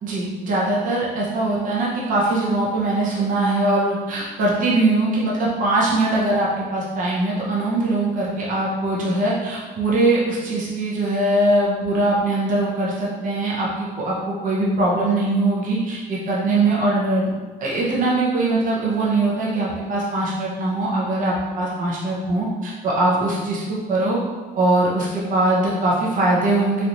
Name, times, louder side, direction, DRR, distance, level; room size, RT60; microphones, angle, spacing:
voice 1, 0.0-17.3 17.6-24.2 24.6-26.8, right 2 dB, 50° right, -5 dB, 0.9 m, -21 dB
3.2 x 3.0 x 2.6 m, 1.3 s
cardioid pair, 110°, 17 cm